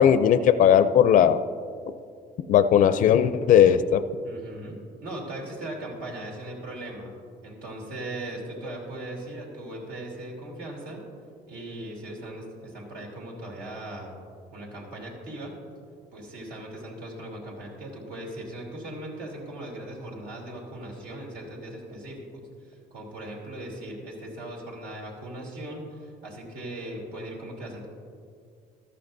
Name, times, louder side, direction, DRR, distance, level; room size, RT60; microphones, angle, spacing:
voice 1, 0.0-1.4 2.5-4.0, left 9 dB, 50° left, 12 dB, 0.4 m, -18 dB
voice 2, 4.2-7.1 7.4-11.0 11.5-14.2 14.5-15.5 16.1-22.2 22.6-27.9, right 1 dB, 90° right, -1 dB, 3.0 m, -38 dB
14.5 x 12.0 x 2.6 m, 2.3 s
cardioid pair, 110°, 17 cm